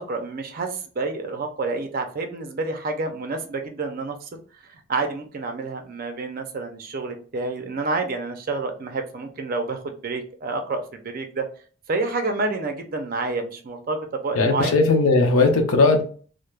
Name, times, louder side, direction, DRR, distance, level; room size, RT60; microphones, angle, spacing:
voice 1, 0.0-11.5 11.9-14.8, right 3 dB, 40° right, 5 dB, 0.4 m, -29 dB
voice 2, 14.4-16.0, left 3 dB, 80° left, 4 dB, 0.6 m, -18 dB
2.2 x 2.0 x 3.1 m, 0.42 s
head